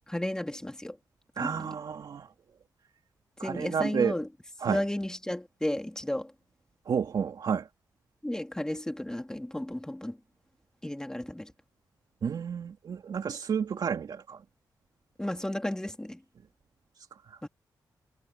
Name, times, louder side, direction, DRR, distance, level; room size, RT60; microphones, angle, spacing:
voice 1, 0.1-1.0 1.4-1.7 3.4-4.3 4.7-6.3 8.2-10.2 10.8-11.5 15.2-16.2 17.4-17.5, left 1 dB, 10° left, 3.3 m, -33 dB
voice 2, 1.4-2.3 3.4-4.2 4.6-4.8 6.9-7.7 12.2-14.4, right 7 dB, 65° right, 2.9 m, -30 dB
cardioid pair, 70°, 7 cm